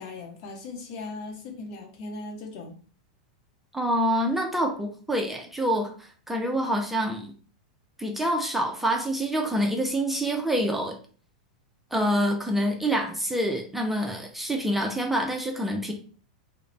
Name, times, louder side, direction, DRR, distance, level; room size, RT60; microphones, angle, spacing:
voice 1, 0.0-2.8, left 3 dB, 50° left, 3 dB, 0.8 m, -38 dB
voice 2, 3.7-7.3 8.0-11.0 11.9-15.9, equal, 5° right, 1 dB, 0.4 m, -26 dB
2.4 x 2.0 x 3.2 m, 0.40 s
hypercardioid pair, 105°, 4 cm